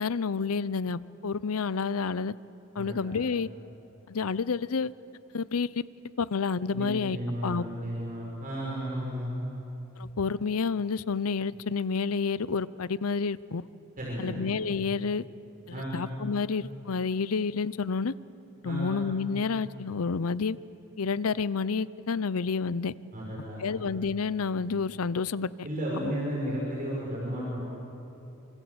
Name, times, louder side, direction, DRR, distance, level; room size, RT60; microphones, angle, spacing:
voice 1, 0.0-2.3 2.8-3.5 4.1-4.9 5.3-5.7 6.2-7.6 10.0-13.6 14.2-15.2 15.7-18.1 18.6-20.6 21.0-22.9 23.6-25.7 26.0-26.1, left 5 dB, 85° left, 18 dB, 0.6 m, -29 dB
voice 2, 2.8-3.2 6.7-9.5 14.0-14.4 15.7-16.1 18.6-19.0 23.1-23.8 25.6-27.6, equal, 40° right, -5 dB, 5.7 m, -33 dB
26.0 x 25.5 x 8.0 m, 2.9 s
head